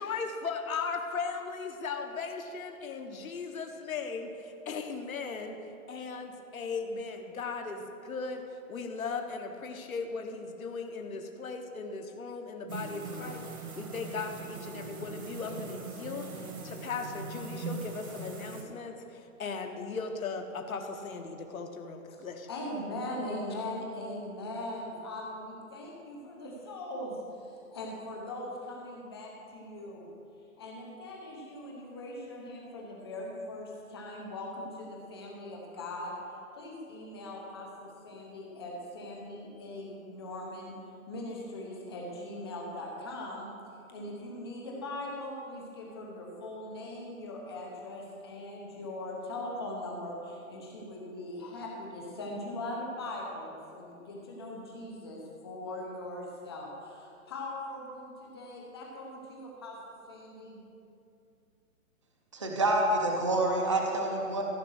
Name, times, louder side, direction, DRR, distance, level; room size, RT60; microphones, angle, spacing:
voice 1, 0.0-5.6 5.9-8.4 8.7-22.5, left 4 dB, 70° left, 4 dB, 1.3 m, -37 dB
sound 1, 12.7-18.6, right 3 dB, 80° right, 2.1 m, -41 dB
voice 2, 22.5-30.1 30.6-36.2 36.6-40.7 41.1-43.5 43.9-60.6, left 1 dB, 20° left, -1 dB, 1.0 m, -40 dB
voice 3, 62.3-64.4, right 1 dB, 20° right, 0 dB, 0.5 m, -27 dB
14.5 x 5.2 x 6.4 m, 2.6 s
hypercardioid pair, 170°, 43 cm